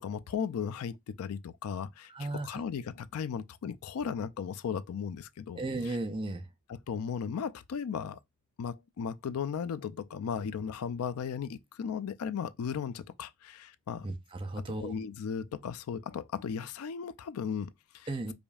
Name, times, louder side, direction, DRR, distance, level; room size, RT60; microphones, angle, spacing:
voice 1, 0.0-6.0 6.7-8.2 8.6-14.1 14.6-18.1, left 7 dB, 85° left, 0.4 m, -36 dB
voice 2, 2.1-2.6 5.6-6.4 14.0-14.9 18.1-18.3, right 2 dB, 25° right, 0.5 m, -35 dB
5.0 x 2.6 x 2.3 m
head